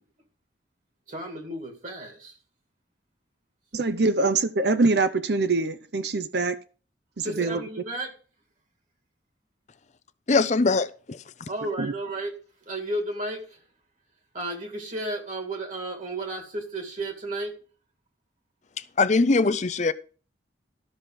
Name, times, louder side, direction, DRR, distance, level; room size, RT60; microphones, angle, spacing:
voice 1, 1.1-2.4 7.2-8.1 11.5-12.3 12.7-13.6 14.3-17.5, right 1 dB, 45° right, 2.1 m, -33 dB
voice 2, 3.7-6.6 7.2-7.6 11.8-11.9, right 3 dB, 60° right, 0.7 m, -24 dB
voice 3, 10.3-11.2 19.0-19.9, left 3 dB, 40° left, 0.5 m, -22 dB
13.0 x 6.0 x 5.0 m
head